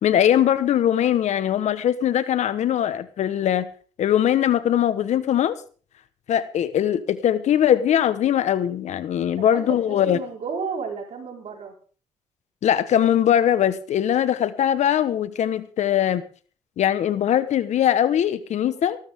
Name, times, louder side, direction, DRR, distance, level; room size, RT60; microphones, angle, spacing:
voice 1, 0.0-3.7 4.0-5.6 6.3-10.2 12.6-16.2 16.8-19.0, left 10 dB, 70° left, 14 dB, 1.3 m, -21 dB
voice 2, 9.4-11.7 18.6-18.8, right 5 dB, 65° right, 1 dB, 4.8 m, -33 dB
18.5 x 14.0 x 3.7 m, 0.40 s
supercardioid pair, 65°, 12 cm